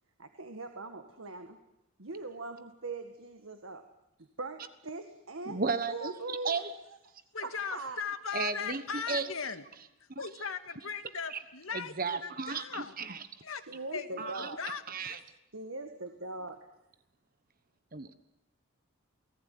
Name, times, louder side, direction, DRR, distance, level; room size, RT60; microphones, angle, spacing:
voice 1, 0.2-1.6 2.0-3.8 4.4-5.6 5.9-6.6 7.4-8.0 13.7-14.6 15.5-16.7, right 3 dB, 70° right, 7 dB, 1.8 m, -41 dB
voice 2, 5.5-6.1 6.4-6.7 8.3-9.3 10.1-10.3 11.3-11.4 11.7-13.3 14.2-14.5 14.9-15.2 17.9-18.1, right 4 dB, 40° right, 11 dB, 1.3 m, -34 dB
voice 3, 7.3-9.6 10.2-12.9 13.4-13.6 13.9-14.3 14.6-14.8 15.1-15.2, left 6 dB, 75° left, 8 dB, 2.0 m, -38 dB
29.0 x 19.0 x 9.5 m, 0.87 s
head